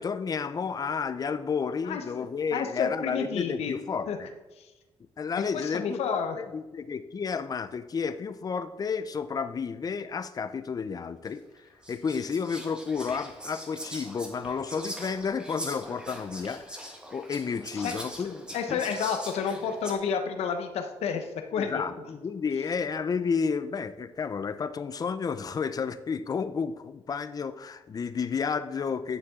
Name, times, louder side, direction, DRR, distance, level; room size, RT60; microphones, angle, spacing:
voice 1, 0.0-4.3 5.2-16.8 17.1-18.8 21.6-29.2, left 5 dB, 35° left, 12 dB, 0.6 m, -31 dB
voice 2, 1.8-2.3 2.5-3.7 4.1-4.2 4.6-4.7 5.5-6.4 17.7-17.9 18.5-21.8, left 6 dB, 85° left, 6 dB, 1.0 m, -30 dB
Whispering, 11.2-11.3 11.8-19.9, equal, 10° right, 1.5 m, -42 dB
9.8 x 6.9 x 3.7 m, 1.1 s
cardioid pair, 110°, 10 cm